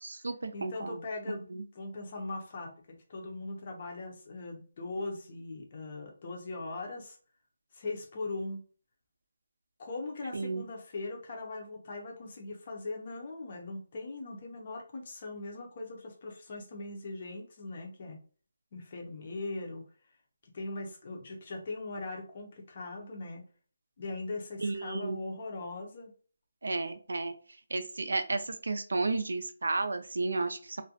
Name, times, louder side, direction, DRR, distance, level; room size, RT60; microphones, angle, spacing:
voice 1, 0.0-1.6 10.3-10.6 24.6-25.2 26.6-27.3 27.7-30.8, right 3 dB, 75° right, 8 dB, 0.4 m, -33 dB
voice 2, 0.5-1.4 1.8-7.2 7.7-8.6 9.8-18.2 18.7-19.8 20.5-23.5 24.0-26.1, left 2 dB, 25° left, 2 dB, 0.5 m, -40 dB
2.4 x 2.1 x 2.7 m, 0.41 s
hypercardioid pair, 180°, 0 cm